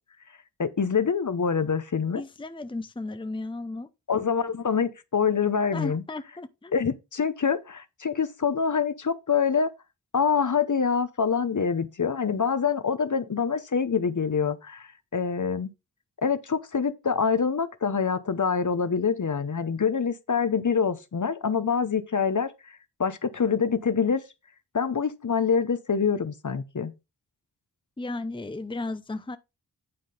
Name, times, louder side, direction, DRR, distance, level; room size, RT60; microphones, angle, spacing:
voice 1, 0.6-2.2 4.1-6.0 6.7-9.7 10.1-15.7 16.2-22.5 23.0-24.2 24.7-26.9, left 6 dB, 45° left, 0.9 m, -25 dB
voice 2, 2.1-3.9 5.7-6.7 28.0-29.4, left 2 dB, 10° left, 0.7 m, -34 dB
9.6 x 3.8 x 5.0 m
cardioid pair, 45°, 41 cm